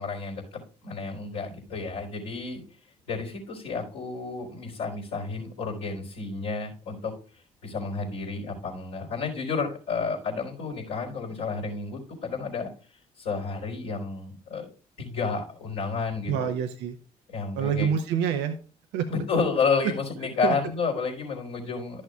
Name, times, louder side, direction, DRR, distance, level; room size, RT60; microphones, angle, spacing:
voice 1, 0.0-2.6 3.1-7.2 7.6-12.7 13.2-14.7 15.0-16.5 17.3-18.0 19.1-22.0, left 4 dB, 70° left, -5 dB, 3.7 m, -31 dB
voice 2, 16.3-17.0 17.5-18.6 18.9-19.1 19.8-19.9 20.4-20.5, right 8 dB, 70° right, 7 dB, 0.9 m, -26 dB
12.5 x 6.5 x 2.4 m, 0.37 s
figure-of-eight pair, 45°, 19 cm